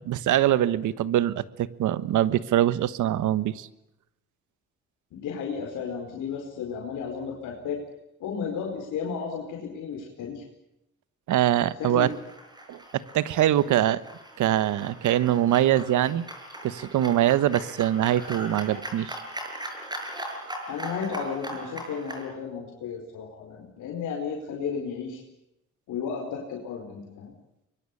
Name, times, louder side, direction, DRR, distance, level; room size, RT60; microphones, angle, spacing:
voice 1, 0.0-3.7 11.3-12.1 12.7-14.0 14.4-16.3 16.6-19.2, right 12 dB, 80° right, 16 dB, 1.3 m, -23 dB
voice 2, 5.1-7.8 8.2-10.4 11.8-12.1 13.7-13.8 20.7-25.2 25.9-27.3, left 6 dB, 85° left, 1 dB, 4.8 m, -33 dB
sound 1, 11.8-22.2, right 1 dB, 15° right, 6.7 m, -39 dB
24.5 x 22.0 x 8.6 m, 0.88 s
cardioid pair, 90°, 30 cm